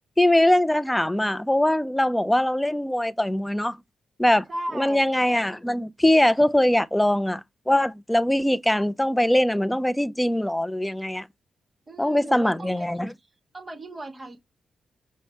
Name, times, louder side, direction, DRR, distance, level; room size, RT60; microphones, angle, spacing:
voice 1, 0.2-3.8 4.2-4.4 4.7-11.3 12.0-13.1, left 1 dB, 10° left, 0.4 m, -22 dB
voice 2, 4.5-5.1 11.9-13.0 13.5-14.4, right 1 dB, 35° right, 1.2 m, -36 dB
5.6 x 2.1 x 4.1 m
cardioid pair, 60°, 0 cm